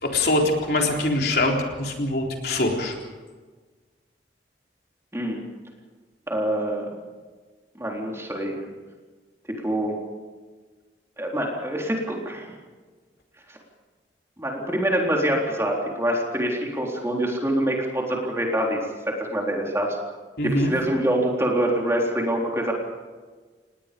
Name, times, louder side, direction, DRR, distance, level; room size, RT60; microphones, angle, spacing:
voice 1, 0.0-3.0 20.4-20.7, left 2 dB, 60° left, 1 dB, 3.9 m, -23 dB
voice 2, 6.3-7.0 7.8-8.6 9.6-10.0 11.2-12.5 13.5-13.6 14.4-18.8 19.1-20.0 20.4-22.7, right 1 dB, 15° right, -1 dB, 3.9 m, -25 dB
28.5 x 19.5 x 5.4 m, 1.4 s
head